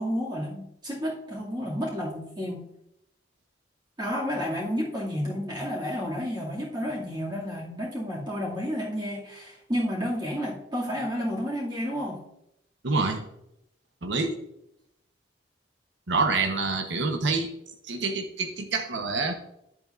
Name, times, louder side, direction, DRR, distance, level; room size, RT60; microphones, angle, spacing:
voice 1, 0.0-2.6 4.0-12.2, equal, 25° right, -6 dB, 2.3 m, -31 dB
voice 2, 12.8-13.2 14.0-14.3 16.1-17.5 17.8-19.3, right 3 dB, 80° right, 4 dB, 1.0 m, -26 dB
10.0 x 8.1 x 2.6 m, 0.78 s
head